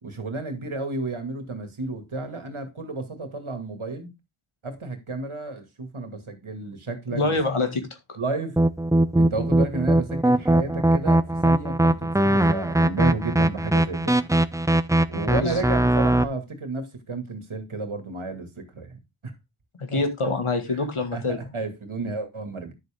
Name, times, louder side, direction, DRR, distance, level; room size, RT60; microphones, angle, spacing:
voice 1, 0.0-4.1 4.6-7.4 8.2-8.6 9.2-14.2 15.1-19.3 19.9-20.0 20.7-20.8 21.1-21.2 21.5-22.7, right 3 dB, 75° right, 2.3 m, -32 dB
voice 2, 7.1-7.8 8.1-8.2 15.4-15.6 19.8-21.4, left 3 dB, 85° left, 2.0 m, -25 dB
sound 1, 8.6-16.2, right 1 dB, 5° right, 0.6 m, -20 dB
10.5 x 7.1 x 3.6 m
wide cardioid pair, 50°, 49 cm